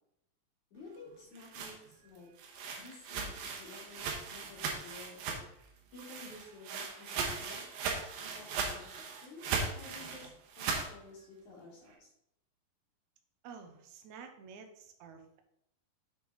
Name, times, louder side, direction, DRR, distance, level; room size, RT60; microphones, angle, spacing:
voice 1, 0.7-2.3 2.8-5.4 5.9-7.6 8.2-10.3 10.6-12.1, left 3 dB, 60° left, -5 dB, 3.2 m, -52 dB
sound 1, 1.1-5.7 5.9-10.9, right 5 dB, 85° right, 2.8 m, -38 dB
voice 2, 13.4-15.4, right 6 dB, 70° right, 5 dB, 2.0 m, -50 dB
7.1 x 6.0 x 4.0 m, 0.78 s
omnidirectional pair, 4.0 m